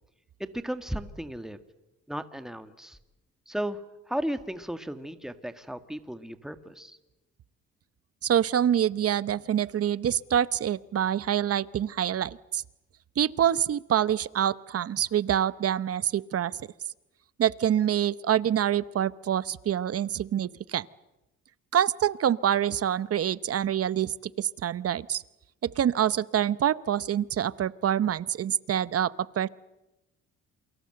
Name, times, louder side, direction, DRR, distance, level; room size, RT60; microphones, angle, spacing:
voice 1, 0.4-1.6 2.1-3.0 3.5-3.8 4.1-7.0, right 1 dB, ahead, 10 dB, 1.7 m, -35 dB
voice 2, 8.2-12.6 13.2-16.5 17.4-20.9 21.7-25.2 25.6-29.5, right 10 dB, 50° right, 18 dB, 0.9 m, -26 dB
28.0 x 23.5 x 7.8 m, 0.99 s
cardioid pair, 90°, 30 cm